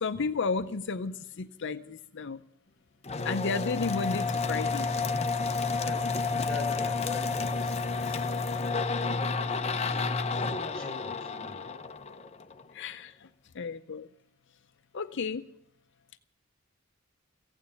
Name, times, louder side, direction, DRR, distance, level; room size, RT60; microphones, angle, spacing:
voice 1, 0.0-2.4 3.2-4.9 12.7-13.1 13.6-14.1 14.9-15.5, left 4 dB, 60° left, 11 dB, 0.5 m, -32 dB
sound 1, 3.0-12.6, left 4 dB, 30° left, 0.8 m, -30 dB
voice 2, 5.8-6.1 6.5-8.4 9.2-10.3 10.7-11.6, left 3 dB, 5° left, -2 dB, 4.9 m, -44 dB
15.5 x 9.2 x 9.7 m, 0.71 s
head